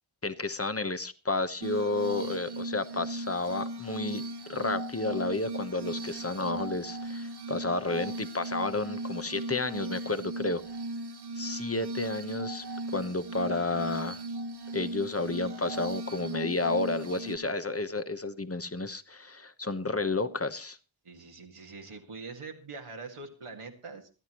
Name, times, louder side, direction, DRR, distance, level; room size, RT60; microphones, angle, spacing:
voice 1, 0.2-4.2 4.5-10.6 11.3-12.7 12.9-14.2 14.7-20.8, left 3 dB, 30° left, 11 dB, 1.1 m, -31 dB
Glass, 1.6-17.4, right 2 dB, 50° right, 1.1 m, -37 dB
voice 2, 21.0-24.1, right 4 dB, 90° right, 2 dB, 2.1 m, -43 dB
26.0 x 9.7 x 3.1 m, 0.31 s
wide cardioid pair, 50°, 50 cm